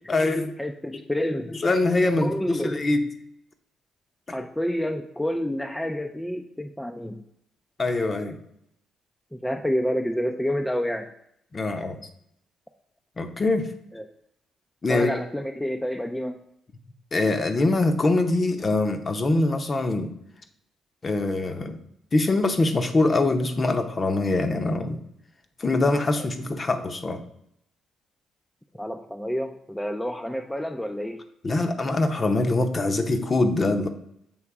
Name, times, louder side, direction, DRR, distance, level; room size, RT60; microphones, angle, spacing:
voice 1, 0.1-0.5 1.6-3.1 7.8-8.4 11.5-12.0 13.2-13.7 14.8-15.1 17.1-20.1 21.0-21.8 22.1-25.0 25.6-27.2 31.4-33.9, left 2 dB, 35° left, 7 dB, 0.8 m, -23 dB
voice 2, 0.6-1.5 2.2-2.8 4.3-7.2 9.3-11.1 13.9-14.1 14.9-16.4 26.2-26.3 28.7-31.2, equal, 5° left, 4 dB, 0.4 m, -29 dB
7.1 x 3.1 x 4.7 m, 0.75 s
cardioid pair, 90°, 0 cm